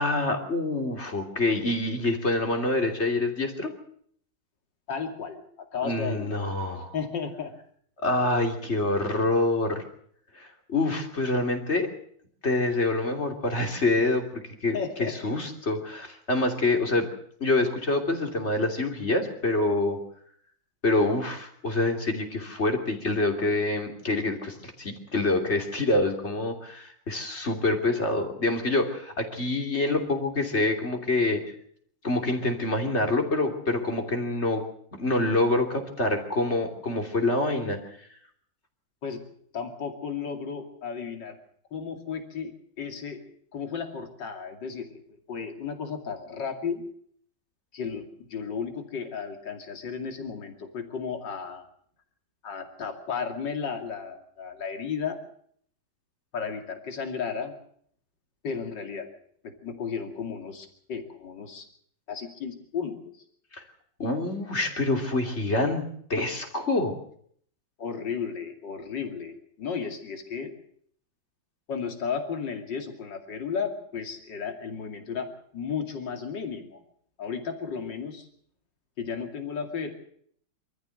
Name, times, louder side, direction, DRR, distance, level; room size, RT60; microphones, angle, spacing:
voice 1, 0.0-3.7 5.8-6.9 8.0-9.8 10.3-11.9 12.4-17.1 17.4-20.0 20.8-31.4 32.0-34.7 34.9-37.8 63.5-63.6 64.0-66.9, left 2 dB, 30° left, 3 dB, 3.3 m, -26 dB
voice 2, 4.9-6.4 6.9-7.5 14.7-15.1 39.0-39.2 39.5-41.4 41.7-43.2 43.5-45.0 45.3-46.9 47.7-51.6 52.4-55.2 56.3-57.5 58.4-59.1 59.4-61.7 62.1-63.1 67.8-70.5 71.7-76.8 77.2-78.3 79.0-79.9, left 6 dB, 60° left, 5 dB, 3.1 m, -34 dB
25.0 x 14.0 x 7.7 m, 0.62 s
omnidirectional pair, 2.2 m